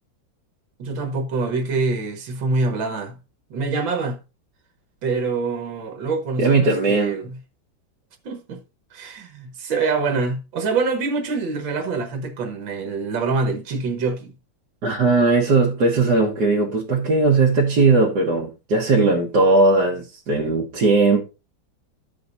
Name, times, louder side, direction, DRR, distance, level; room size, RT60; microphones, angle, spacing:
voice 1, 0.8-3.2 3.5-4.2 5.0-7.4 8.2-8.6 8.9-14.3, right 4 dB, 80° right, 2.1 m, -25 dB
voice 2, 6.4-7.2 14.8-21.2, right 3 dB, 60° right, 2.0 m, -18 dB
15.0 x 5.2 x 2.6 m
omnidirectional pair, 2.1 m